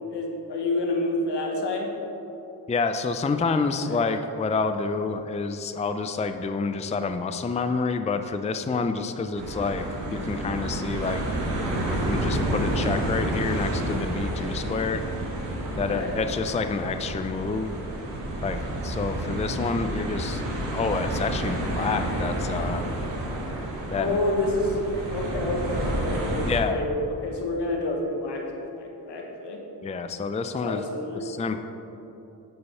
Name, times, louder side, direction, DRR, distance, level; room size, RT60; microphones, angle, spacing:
voice 1, 0.1-1.9 3.8-4.0 15.7-16.1 23.9-29.6 30.6-31.2, left 2 dB, 75° left, 1 dB, 1.3 m, -29 dB
voice 2, 2.7-11.2 12.0-15.0 15.8-17.7 18.4-20.4 20.7-22.9 23.9-24.2 26.4-26.8 29.8-30.8 31.1-31.6, left 4 dB, 15° left, 8 dB, 0.4 m, -28 dB
sound 1, 9.3-26.6, right 1 dB, 80° right, 1.6 m, -30 dB
7.8 x 5.6 x 5.5 m, 3.0 s
cardioid pair, 50°, 42 cm